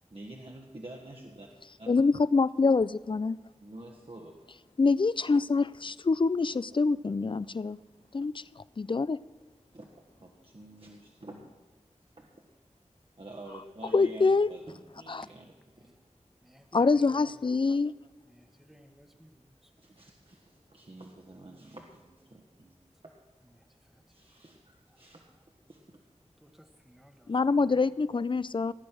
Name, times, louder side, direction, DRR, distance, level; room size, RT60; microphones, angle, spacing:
voice 1, 0.1-1.5 1.8-1.9 3.6-4.3 9.7-9.9 10.2-11.5 12.2-12.3 13.2-15.4 15.8-15.9 19.8-23.1 24.1-25.2 25.7-26.0, right 1 dB, 50° right, 0 dB, 1.4 m, -48 dB
voice 2, 1.9-3.4 4.8-7.8 8.1-8.4 8.8-9.2 13.9-14.5 15.1-15.2 16.7-17.9 27.3-28.7, left 4 dB, 40° left, 19 dB, 0.4 m, -25 dB
voice 3, 16.4-17.6 18.2-19.7 23.4-24.3 24.9-26.0 26.4-27.8, equal, 5° right, 5 dB, 1.2 m, -57 dB
17.5 x 8.5 x 6.2 m, 1.3 s
wide cardioid pair, 55°, 13 cm